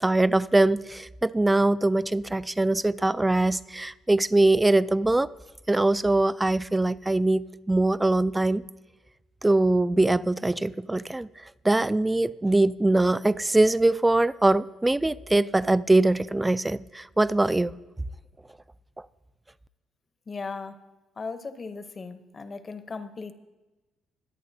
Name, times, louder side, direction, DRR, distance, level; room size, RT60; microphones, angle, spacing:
voice 1, 0.0-5.3 5.7-8.6 9.4-11.3 11.6-17.7, right 2 dB, 15° right, 17 dB, 0.3 m, -22 dB
voice 2, 20.3-20.8 21.2-23.3, left 4 dB, 35° left, 10 dB, 0.8 m, -37 dB
21.5 x 8.5 x 2.7 m, 1.1 s
supercardioid pair, 75°, 0 cm